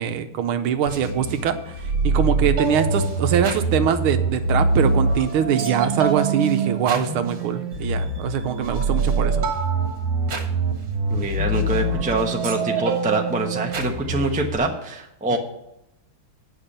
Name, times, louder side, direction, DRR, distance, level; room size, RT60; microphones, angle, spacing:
voice 1, 0.0-9.4 15.3-15.4, right 8 dB, 85° right, 8 dB, 1.6 m, -23 dB
sound 1, 0.9-14.6, right 3 dB, 60° right, 2.1 m, -24 dB
voice 2, 11.1-15.4, right 2 dB, 10° right, 2 dB, 0.3 m, -25 dB
8.9 x 5.9 x 6.7 m, 0.85 s
omnidirectional pair, 2.3 m